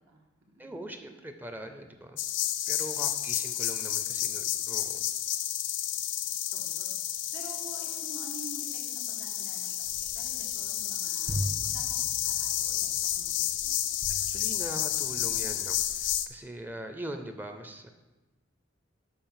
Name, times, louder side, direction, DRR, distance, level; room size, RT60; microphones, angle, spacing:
voice 1, 0.6-2.2 2.7-5.1 14.1-17.9, right 1 dB, 10° right, 6 dB, 0.5 m, -42 dB
sound 1, 2.2-16.3, left 12 dB, 65° left, 0.4 m, -31 dB
voice 2, 5.9-6.9 7.3-12.0 12.2-13.9, right 3 dB, 80° right, -2 dB, 1.6 m, -49 dB
sound 2, 9.8-15.2, equal, 50° right, 1.5 m, -40 dB
6.9 x 5.3 x 5.7 m, 1.1 s
head